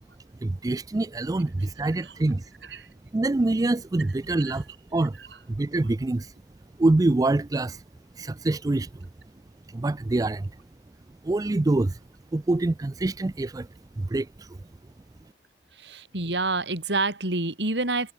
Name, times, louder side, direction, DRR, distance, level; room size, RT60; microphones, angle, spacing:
voice 1, 0.4-2.5 3.1-4.6 4.9-5.2 5.5-6.3 6.8-7.8 8.2-8.9 9.7-10.5 11.2-12.0 12.3-13.7 14.0-14.6, right 2 dB, 20° right, 0.4 m, -25 dB
voice 2, 15.7-18.1, right 2 dB, 75° right, 5.5 m, -28 dB
head